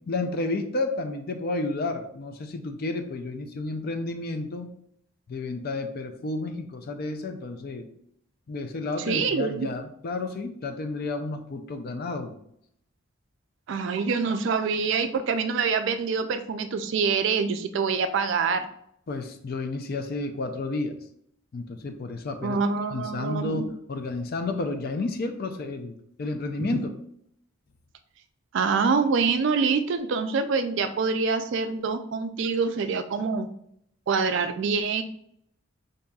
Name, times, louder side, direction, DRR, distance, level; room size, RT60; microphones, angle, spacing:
voice 1, 0.0-4.7 5.3-7.9 8.5-12.4 19.1-21.0 21.5-22.6 22.9-26.9, left 2 dB, 45° left, 7 dB, 0.4 m, -31 dB
voice 2, 9.1-9.7 13.7-18.7 22.4-23.7 26.6-26.8 28.5-33.5 34.1-35.0, right 5 dB, 55° right, 9 dB, 0.3 m, -25 dB
5.3 x 2.6 x 2.3 m, 0.71 s
head